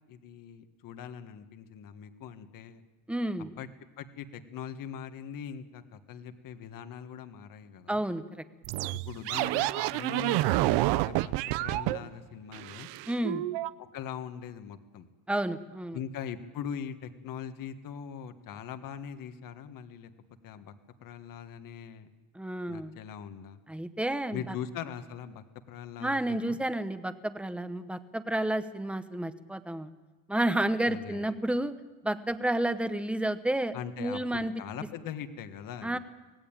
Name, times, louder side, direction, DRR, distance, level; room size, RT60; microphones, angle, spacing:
voice 1, 0.1-2.8 3.6-3.7 4.0-8.0 8.9-11.3 11.6-12.9 13.8-15.1 15.9-20.1 20.4-20.7 21.0-22.1 22.7-23.6 24.3-26.6 30.8-31.4 33.7-36.0, left 8 dB, 55° left, 8 dB, 1.7 m, -41 dB
voice 2, 3.1-3.5 7.9-8.4 13.1-13.4 15.3-16.0 22.3-22.9 23.7-24.5 26.0-29.9 30.3-31.7 32.0-34.5 35.8-36.0, right 1 dB, 5° right, 10 dB, 0.9 m, -31 dB
sound 1, 8.6-12.0 12.5-13.7, right 17 dB, 85° right, 0.8 m, -29 dB
25.0 x 18.5 x 9.0 m, 1.2 s
cardioid pair, 155°, 41 cm